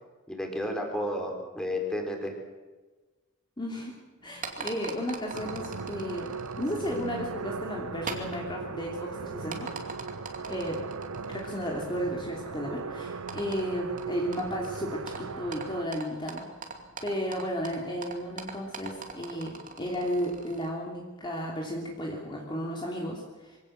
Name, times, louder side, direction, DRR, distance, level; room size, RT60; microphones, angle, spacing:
voice 1, 0.3-2.3, left 1 dB, 5° left, 2 dB, 3.9 m, -32 dB
voice 2, 3.6-6.3 6.6-9.7 10.5-10.8 11.3-16.5 17.0-23.6, equal, 20° left, -2 dB, 3.0 m, -34 dB
sound 1, 4.2-20.7, right 4 dB, 40° right, 2.7 m, -44 dB
sound 2, 5.3-15.9, right 4 dB, 90° right, 0.8 m, -38 dB
24.0 x 17.0 x 7.5 m, 1.2 s
head